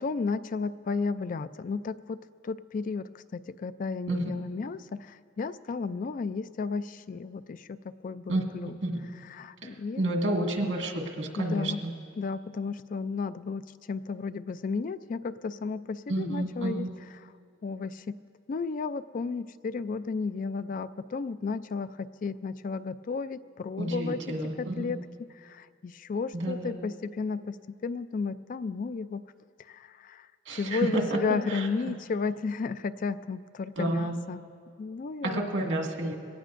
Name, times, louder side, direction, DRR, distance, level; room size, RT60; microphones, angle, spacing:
voice 1, 0.0-2.2 2.4-8.8 9.3-10.0 11.4-11.8 12.2-16.9 17.6-18.1 18.5-27.6 27.8-29.2 29.6-34.4 34.8-35.4, left 4 dB, 45° left, 13 dB, 0.3 m, -33 dB
voice 2, 10.0-11.9 16.1-16.9 23.8-25.0 26.3-26.7 30.5-31.2 31.5-31.7 33.8-34.2 35.2-36.2, right 1 dB, 85° right, 1 dB, 1.9 m, -30 dB
22.5 x 18.0 x 2.5 m, 2.3 s
head